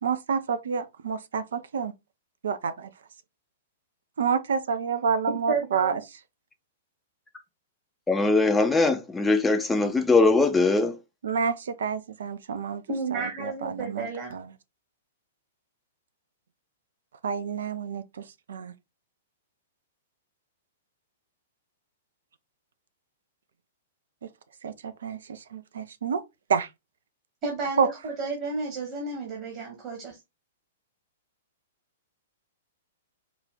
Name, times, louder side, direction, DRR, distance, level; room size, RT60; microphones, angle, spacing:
voice 1, 0.0-1.9 2.4-2.9 4.2-6.0 11.2-12.8 13.1-14.5 17.2-18.7 24.2-24.3 24.6-26.2 26.5-26.7 27.8-27.9, right 6 dB, 60° right, 0.5 m, -29 dB
voice 2, 5.5-6.0 12.9-14.4 27.4-30.2, right 4 dB, 35° right, 1.4 m, -32 dB
voice 3, 8.1-11.0, left 3 dB, 10° left, 0.6 m, -21 dB
4.9 x 2.4 x 3.8 m
figure-of-eight pair, 105°, 0 cm